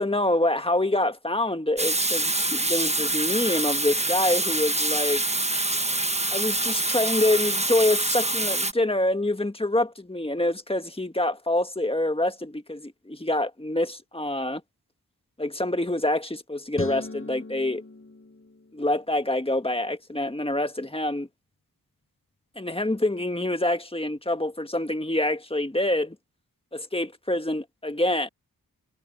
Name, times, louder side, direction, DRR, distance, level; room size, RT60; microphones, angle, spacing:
voice 1, 0.0-5.2 6.3-14.6 15.4-17.8 18.7-21.3 22.5-26.1 26.7-28.3, left 1 dB, 15° left, 1.7 m, -26 dB
Water tap faucet / Sink (filling or washing), 1.8-8.7, right 2 dB, 20° right, 1.4 m, -25 dB
sound 1, 16.7-19.1, left 2 dB, 35° left, 7.4 m, -39 dB
cardioid pair, 55°, 36 cm